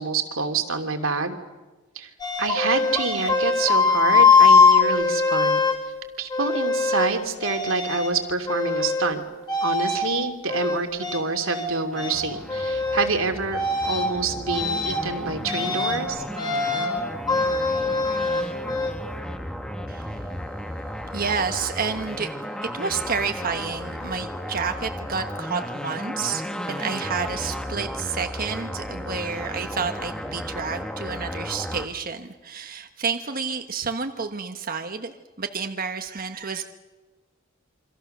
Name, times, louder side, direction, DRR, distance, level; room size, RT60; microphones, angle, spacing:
voice 1, 0.0-1.4 1.9-2.1 2.4-5.6 6.2-9.2 9.6-16.2, right 4 dB, 85° right, 6 dB, 2.8 m, -27 dB
sound 1, 2.2-5.8 6.3-7.1 7.4-8.1 8.5-9.1 9.5-10.0 10.5-11.7 11.9-12.2 12.5-13.1 13.5-14.1 14.5-15.0 15.4-16.0 16.4-16.9 17.3-18.9, left 4 dB, 20° left, 4.9 m, -21 dB
sound 2, 11.9-31.9, equal, 5° left, 1.6 m, -34 dB
voice 2, 21.1-22.3 22.6-36.6, right 5 dB, 45° right, 6 dB, 1.3 m, -30 dB
28.0 x 25.0 x 6.7 m, 1.3 s
head